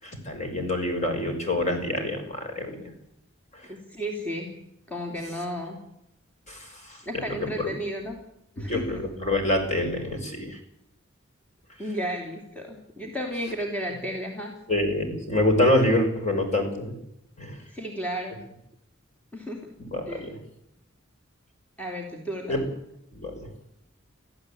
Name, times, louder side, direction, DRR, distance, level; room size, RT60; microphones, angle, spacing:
voice 1, 0.0-2.9 3.5-3.6 6.5-7.0 7.3-7.7 8.6-10.6 14.7-16.9 17.4-17.6 19.8-20.4 22.5-22.6 23.1-23.5, left 1 dB, 35° left, 4 dB, 5.9 m, -26 dB
voice 2, 3.7-4.5 4.9-5.8 7.0-8.2 8.6-8.8 11.8-14.5 17.7-18.4 19.3-19.6 20.1-20.3 21.8-22.6, equal, 5° left, 0 dB, 3.1 m, -33 dB
25.0 x 15.0 x 8.7 m, 0.81 s
head